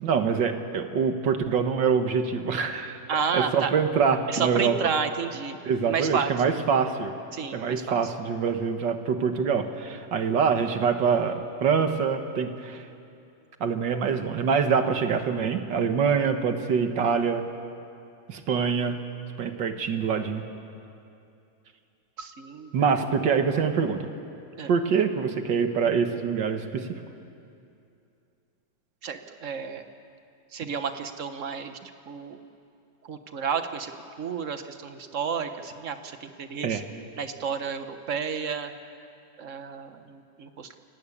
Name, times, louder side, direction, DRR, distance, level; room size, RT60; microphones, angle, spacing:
voice 1, 0.0-3.0 3.3-4.7 5.6-7.1 7.5-12.9 13.6-17.4 18.3-19.0 19.4-20.4 22.7-24.1 24.7-27.0 36.6-36.8, right 6 dB, 85° right, 7 dB, 2.1 m, -25 dB
voice 2, 3.1-3.7 4.3-5.6 5.9-6.3 7.3-8.1 22.2-23.0 24.6-24.7 29.0-29.8 30.5-31.8 32.1-32.4 33.0-33.9 34.2-36.8 37.2-38.7 39.4-40.8, right 6 dB, 50° right, 8 dB, 1.5 m, -31 dB
29.0 x 18.0 x 8.6 m, 2.6 s
omnidirectional pair, 1.9 m